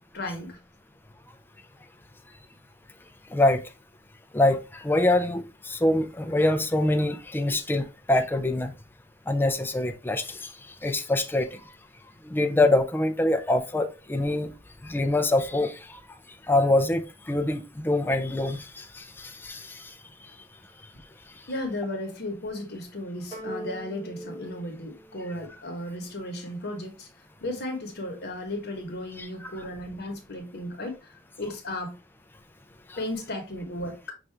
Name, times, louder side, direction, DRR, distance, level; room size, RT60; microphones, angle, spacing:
voice 1, 0.1-0.6 21.5-27.1 27.4-31.9 33.0-34.1, left 1 dB, 55° left, 1.1 m, -35 dB
voice 2, 3.3-3.7 4.3-8.7 9.3-10.5 10.8-11.5 12.3-14.5 14.8-16.0 16.5-19.8 29.2-29.5, left 2 dB, 10° left, 0.4 m, -25 dB
sound 1, 23.3-25.9, right 1 dB, 30° right, 2.7 m, -41 dB
5.6 x 2.5 x 3.2 m
head